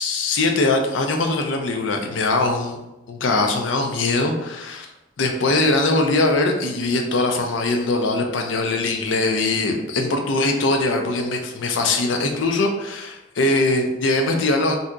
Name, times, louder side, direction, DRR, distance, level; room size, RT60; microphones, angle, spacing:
voice 1, 0.0-2.8 3.1-4.9 5.2-14.8, left 2 dB, 80° left, 3 dB, 0.5 m, -21 dB
2.7 x 2.2 x 3.6 m, 0.96 s
head